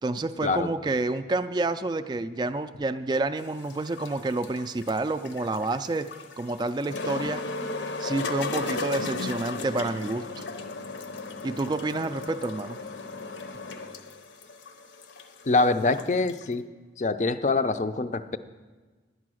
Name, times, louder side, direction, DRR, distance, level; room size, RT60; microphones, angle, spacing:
voice 1, 0.0-6.1 6.4-7.4 8.0-10.4 11.4-12.8, right 2 dB, 25° right, 9 dB, 0.3 m, -29 dB
sound 1, 3.4-16.5, left 3 dB, 75° left, 0.7 m, -36 dB
voice 2, 15.5-16.7 17.0-18.4, left 3 dB, 40° left, 11 dB, 0.4 m, -24 dB
11.0 x 9.5 x 6.2 m, 1.4 s
head